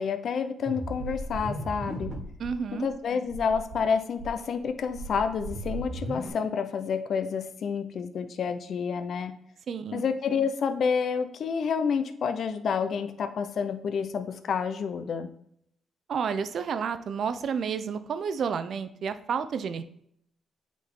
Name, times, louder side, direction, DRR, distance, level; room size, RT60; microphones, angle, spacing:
voice 1, 0.0-2.1 2.7-9.4 9.9-15.3, left 6 dB, 60° left, 9 dB, 0.6 m, -29 dB
sound 1, 0.7-2.5 2.9-3.0 3.3-3.8 4.2-6.3, right 2 dB, 45° right, 1.6 m, -36 dB
voice 2, 2.4-2.9 9.7-10.0 16.1-19.8, right 6 dB, 60° right, 11 dB, 0.6 m, -30 dB
8.3 x 4.0 x 3.6 m, 0.70 s
cardioid pair, 90°, 0 cm